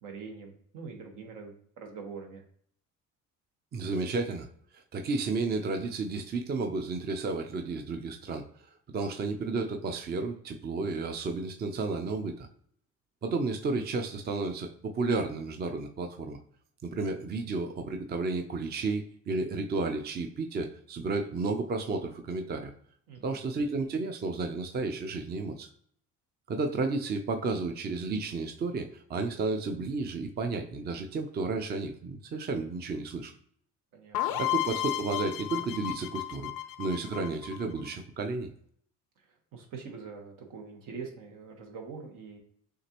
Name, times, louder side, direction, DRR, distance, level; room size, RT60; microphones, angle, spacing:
voice 1, 0.0-2.4 23.1-23.4 33.9-34.4 39.5-42.4, right 5 dB, 75° right, 2 dB, 1.3 m, -44 dB
voice 2, 3.7-4.5 4.7-8.5 8.9-12.5 13.2-16.4 16.8-22.7 23.2-25.7 26.5-33.3 34.4-36.5 36.8-38.5, right 3 dB, 30° right, 5 dB, 0.6 m, -32 dB
sound 1, 34.1-37.9, left 15 dB, 90° left, 0.6 m, -33 dB
6.4 x 2.5 x 3.0 m, 0.63 s
cardioid pair, 105°, 32 cm